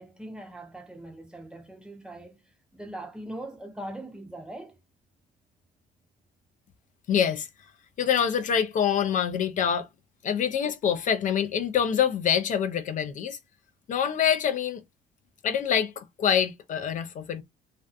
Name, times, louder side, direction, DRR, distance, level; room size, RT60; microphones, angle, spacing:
voice 1, 0.0-4.8, right 1 dB, 5° right, 0.6 m, -41 dB
voice 2, 7.1-7.5 8.0-9.9 10.2-13.4 13.9-14.8 15.4-17.4, left 8 dB, 50° left, 0.4 m, -25 dB
2.5 x 2.2 x 2.4 m
cardioid pair, 110°, 17 cm